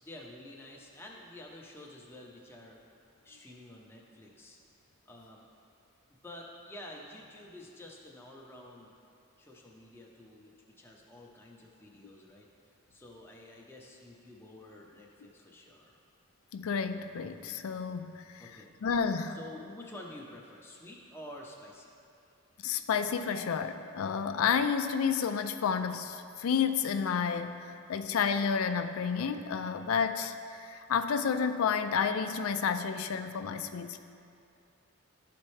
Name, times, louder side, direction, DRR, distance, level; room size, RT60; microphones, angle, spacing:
voice 1, 0.0-2.8 3.2-4.6 5.1-5.4 6.2-8.9 9.4-12.5 12.9-15.9 18.4-18.7 19.3-21.9, left 1 dB, 10° left, -2 dB, 0.7 m, -49 dB
voice 2, 16.5-18.4 18.8-19.4 22.6-30.3 30.6-34.0, left 6 dB, 85° left, 9 dB, 0.4 m, -30 dB
12.5 x 4.2 x 3.2 m, 2.5 s
head